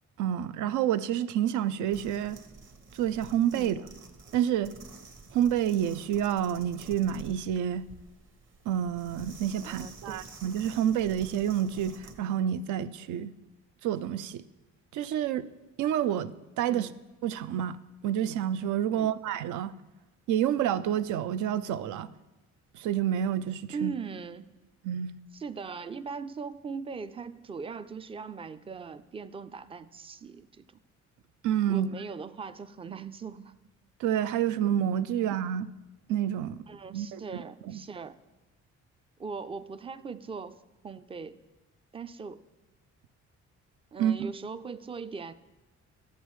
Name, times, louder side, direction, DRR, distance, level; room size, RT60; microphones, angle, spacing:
voice 1, 0.2-2.4 2.9-3.8 4.3-4.7 5.3-7.9 8.7-13.3 13.8-14.4 14.9-15.5 15.8-16.9 17.2-17.8 18.0-19.7 20.3-22.1 22.7-23.9 24.8-25.1 31.4-31.9 34.0-35.7 36.1-36.6 36.9-37.8 44.0-44.3, right 10 dB, 80° right, 0.5 m, -28 dB
sound 1, 1.9-12.2, right 4 dB, 40° right, 1.1 m, -50 dB
voice 2, 9.6-10.2 16.7-17.0 18.9-19.1 23.7-24.5 25.3-30.7 31.7-33.5 36.7-38.2 39.2-40.6 40.8-41.4 41.9-42.4 43.9-45.3, right 5 dB, 20° right, 0.3 m, -40 dB
11.5 x 8.1 x 3.1 m
cardioid pair, 90°, 30 cm